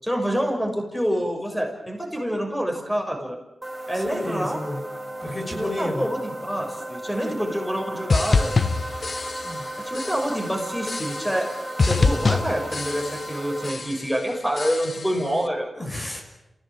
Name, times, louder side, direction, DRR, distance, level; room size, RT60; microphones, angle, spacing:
voice 1, 0.0-3.4 3.9-4.6 5.6-8.5 9.8-11.5 11.8-15.7, equal, 5° left, 2 dB, 6.2 m, -27 dB
sound 1, 3.6-13.7, right 1 dB, 25° right, 2.7 m, -35 dB
voice 2, 3.9-4.8 5.2-6.1 7.2-7.3 9.4-9.6 15.8-16.2, left 1 dB, 35° left, 1 dB, 6.3 m, -31 dB
sound 2, 8.1-9.7 9.9-10.5 10.9-11.5 11.8-13.4 13.6-14.2 14.6-15.2, left 4 dB, 60° left, 1.2 m, -25 dB
27.0 x 17.0 x 9.1 m, 0.97 s
cardioid pair, 55°, 0 cm